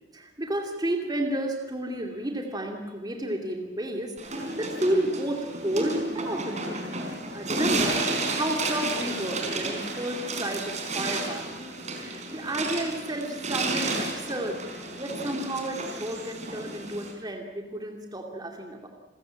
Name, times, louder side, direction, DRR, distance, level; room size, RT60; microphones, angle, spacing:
voice 1, 0.1-6.8 7.3-11.6 12.0-14.6 15.0-18.9, right 1 dB, 20° right, 3 dB, 2.5 m, -31 dB
sound 1, 4.2-17.1, right 2 dB, 40° right, 4.2 m, -32 dB
28.5 x 15.5 x 8.9 m, 1.1 s
head